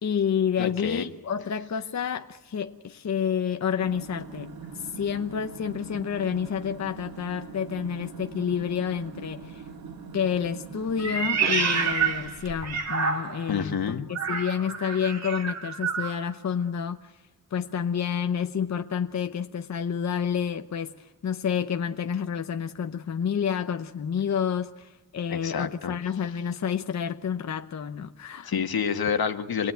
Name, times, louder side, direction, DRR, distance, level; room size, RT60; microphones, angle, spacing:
voice 1, 0.0-9.6 10.1-17.1 17.5-28.7, left 7 dB, 50° left, 0.8 m, -29 dB
voice 2, 0.6-1.0 13.5-14.1 25.3-26.0 28.4-29.7, left 7 dB, 80° left, 1.6 m, -28 dB
sound 1, 3.7-12.9, right 5 dB, 80° right, 2.6 m, -42 dB
Meow, 11.0-13.5 14.1-16.2, right 5 dB, 45° right, 2.3 m, -28 dB
26.5 x 21.0 x 9.2 m
wide cardioid pair, 155°, 36 cm